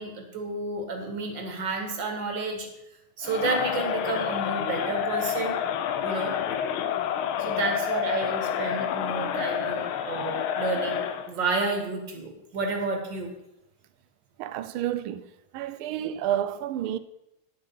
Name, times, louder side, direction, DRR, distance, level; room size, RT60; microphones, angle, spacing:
voice 1, 0.0-2.7 3.2-5.6 6.0-6.4 7.4-13.3, right 3 dB, 60° right, 2.3 m, -30 dB
Crowd, 3.2-11.3, left 9 dB, 85° left, 1.5 m, -29 dB
voice 2, 14.4-15.3 15.5-17.0, right 11 dB, 90° right, 1.5 m, -30 dB
9.7 x 6.7 x 5.5 m
omnidirectional pair, 2.3 m